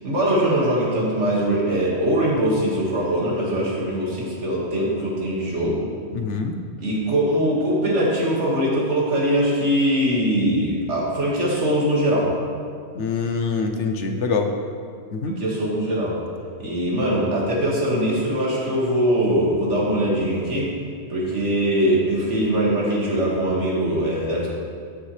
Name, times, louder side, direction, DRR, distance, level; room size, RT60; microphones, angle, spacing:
voice 1, 0.0-5.8 6.8-12.4 15.3-16.2 16.6-20.7 21.1-24.5, right 1 dB, 70° right, -5 dB, 2.3 m, -22 dB
voice 2, 6.1-6.6 12.9-14.5 15.1-15.4, left 5 dB, 75° left, 5 dB, 1.1 m, -24 dB
13.0 x 7.1 x 3.3 m, 2.1 s
omnidirectional pair, 1.2 m